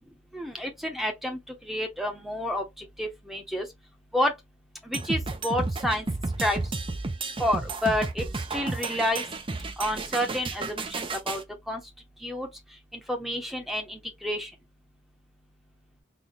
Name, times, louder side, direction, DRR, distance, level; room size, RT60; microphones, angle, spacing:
voice 1, 0.3-1.4 1.7-2.6 3.0-3.7 4.1-4.3 4.9-6.0 6.4-6.6 7.4-8.2 8.5-9.2 9.8-11.4 11.7-11.8 12.2-12.5 13.1-14.5, left 1 dB, ahead, 0.8 m, -29 dB
sound 1, 4.9-11.4, right 3 dB, 25° right, 0.6 m, -32 dB
4.1 x 2.3 x 3.2 m
head